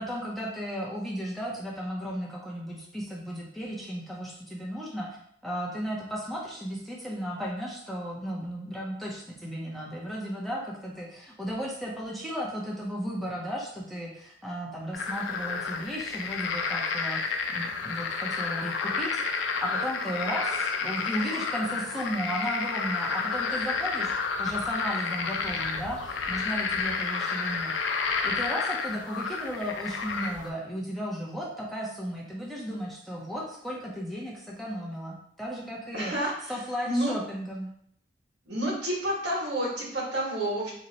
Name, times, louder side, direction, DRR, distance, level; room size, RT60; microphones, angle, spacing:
voice 1, 0.0-27.9 28.2-36.1 36.5-37.7, equal, ahead, -5 dB, 0.5 m, -35 dB
sound 1, 14.9-30.5, left 5 dB, 90° left, 0.4 m, -30 dB
voice 2, 35.9-37.1 38.4-40.7, right 1 dB, 70° right, -5 dB, 1.3 m, -30 dB
2.8 x 2.1 x 3.8 m, 0.68 s
head